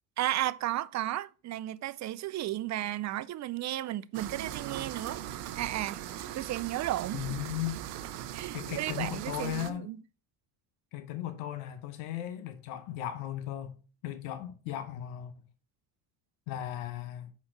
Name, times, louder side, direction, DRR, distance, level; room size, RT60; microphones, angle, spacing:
voice 1, 0.2-6.0 6.3-7.4 8.3-10.0, right 14 dB, 40° right, 0.4 m, -34 dB
sound 1, 4.1-9.7, right 11 dB, 80° right, 0.8 m, -40 dB
voice 2, 7.1-7.8 8.5-9.9 10.9-13.8 14.0-15.3 16.5-17.3, left 12 dB, 80° left, 0.9 m, -36 dB
4.9 x 4.4 x 5.8 m
supercardioid pair, 75°, 47 cm